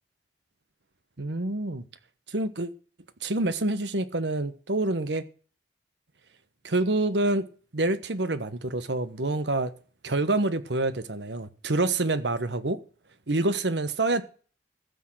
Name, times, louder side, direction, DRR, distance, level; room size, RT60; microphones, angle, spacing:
voice 1, 1.2-1.8 2.3-2.7 3.2-5.2 6.6-7.5 7.7-9.7 10.0-12.8 13.3-14.2, right 2 dB, 80° right, 1.2 m, -27 dB
14.5 x 6.5 x 7.6 m
head